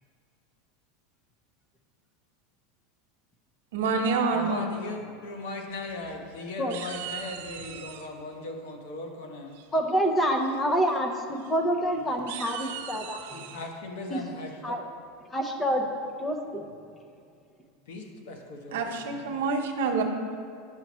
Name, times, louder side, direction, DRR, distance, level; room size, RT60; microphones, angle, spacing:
voice 1, 3.7-4.7 18.7-20.0, right 4 dB, 90° right, 3 dB, 0.9 m, -27 dB
voice 2, 4.3-9.6 13.5-14.7 17.9-19.4, left 2 dB, 75° left, 3 dB, 1.1 m, -38 dB
sound 1, 5.7-6.3 6.7-8.1 9.5-9.9 10.3-10.6 10.8-11.0 11.4-11.5 12.1-13.7, right 9 dB, 65° right, 0.6 m, -41 dB
voice 3, 9.7-13.5 14.1-14.2 14.6-14.8 15.3-15.9 16.2-16.6, equal, 10° left, 3 dB, 0.6 m, -27 dB
11.0 x 5.6 x 3.1 m, 2.4 s
supercardioid pair, 175°, 0 cm